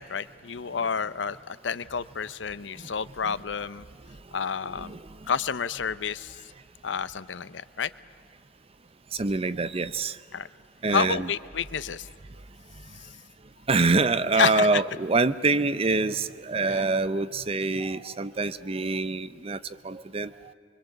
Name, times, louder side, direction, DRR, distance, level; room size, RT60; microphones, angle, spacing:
voice 1, 0.0-3.8 4.3-5.0 5.3-6.4 6.8-7.9 10.3-10.5 10.9-12.1 14.4-14.7, left 6 dB, 75° left, 16 dB, 0.7 m, -29 dB
voice 2, 4.7-5.0 9.1-10.2 10.8-11.3 13.7-20.5, right 3 dB, 30° right, 15 dB, 0.6 m, -26 dB
24.5 x 23.5 x 7.9 m, 2.4 s
head